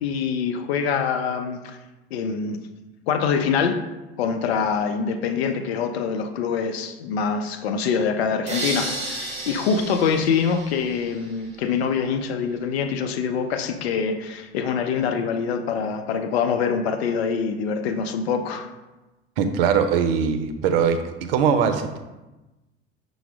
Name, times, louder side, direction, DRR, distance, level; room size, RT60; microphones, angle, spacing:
voice 1, 0.0-1.8 2.1-2.6 3.1-3.8 4.2-18.7, left 6 dB, 70° left, 7 dB, 0.5 m, -24 dB
sound 1, 8.5-11.5, right 2 dB, 20° right, 0.9 m, -32 dB
voice 2, 19.4-22.0, right 7 dB, 60° right, 8 dB, 0.5 m, -21 dB
5.8 x 2.0 x 3.4 m, 1.1 s
figure-of-eight pair, 70°, 32 cm